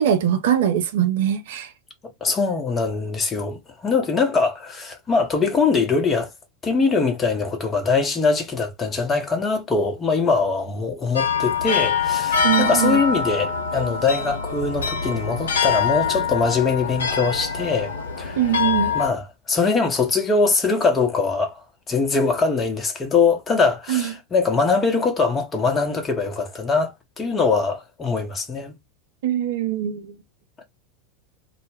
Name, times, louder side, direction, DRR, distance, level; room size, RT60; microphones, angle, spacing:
voice 1, 0.0-1.7 12.4-13.0 18.4-18.9 23.9-24.1 29.2-30.1, right 10 dB, 60° right, 0.4 m, -22 dB
voice 2, 2.2-6.3 6.6-18.4 18.9-28.7 30.6-30.7, left 4 dB, 20° left, 0.8 m, -22 dB
sound 1, 11.2-19.1, left 6 dB, 70° left, 0.5 m, -24 dB
2.1 x 2.0 x 3.3 m
figure-of-eight pair, 85°, 0 cm